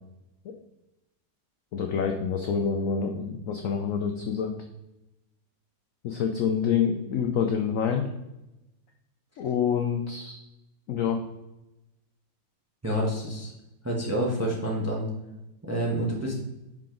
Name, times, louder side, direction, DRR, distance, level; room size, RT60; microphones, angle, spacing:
voice 1, 1.7-4.5 6.0-8.1 9.4-10.4 10.9-11.2, left 7 dB, 80° left, 4 dB, 0.7 m, -27 dB
voice 2, 12.8-13.5 13.8-15.1 15.6-16.3, right 1 dB, 10° right, -2 dB, 0.7 m, -28 dB
5.7 x 5.0 x 3.8 m, 0.95 s
omnidirectional pair, 2.0 m